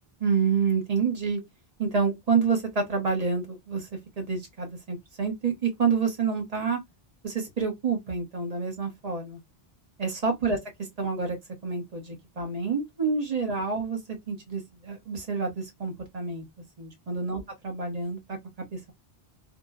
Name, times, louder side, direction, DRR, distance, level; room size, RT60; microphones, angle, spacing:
voice 1, 0.2-1.4 1.8-3.9 4.2-6.8 7.2-9.4 10.0-10.6 11.0-11.4 11.6-14.0 14.3-16.5 16.8-18.9, right 5 dB, 40° right, 1.0 m, -28 dB
2.8 x 2.1 x 2.2 m
omnidirectional pair, 1.0 m